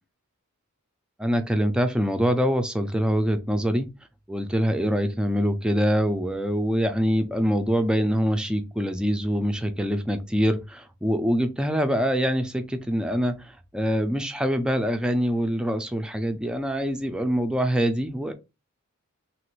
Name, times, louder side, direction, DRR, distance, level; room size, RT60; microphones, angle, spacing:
voice 1, 1.2-3.9 4.3-18.3, equal, 5° right, 0.3 m, -24 dB
2.9 x 2.4 x 3.1 m
head